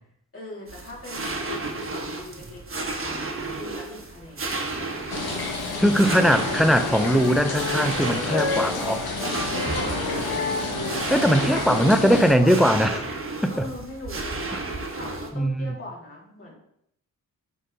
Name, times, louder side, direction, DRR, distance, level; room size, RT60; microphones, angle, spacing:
voice 1, 0.3-4.5 9.4-10.4 11.5-12.7 13.5-14.4 14.9-16.6, left 2 dB, 35° left, 3.1 m, -40 dB
sound 1, 0.7-15.3, right 2 dB, 35° right, 1.3 m, -33 dB
sound 2, 5.1-12.4, left 3 dB, 80° left, 1.6 m, -30 dB
voice 2, 5.8-9.0 11.1-13.0 13.4-13.7 15.3-15.7, equal, ahead, 0.5 m, -20 dB
Wind instrument woodwind instrument, 6.0-12.3, left 3 dB, 60° left, 2.2 m, -33 dB
9.0 x 3.9 x 4.0 m
cardioid pair, 65°, 37 cm